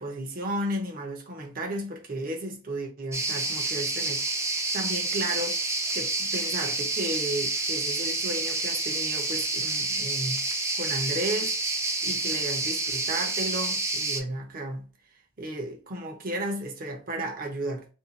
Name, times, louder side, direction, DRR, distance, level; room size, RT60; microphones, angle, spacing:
voice 1, 0.0-4.2 4.7-5.6 5.9-10.4 10.7-11.5 12.0-14.8 15.4-17.9, right 1 dB, 40° right, 0.7 m, -33 dB
sound 1, 3.1-14.2, right 3 dB, 15° right, 0.4 m, -29 dB
2.7 x 2.3 x 3.9 m
head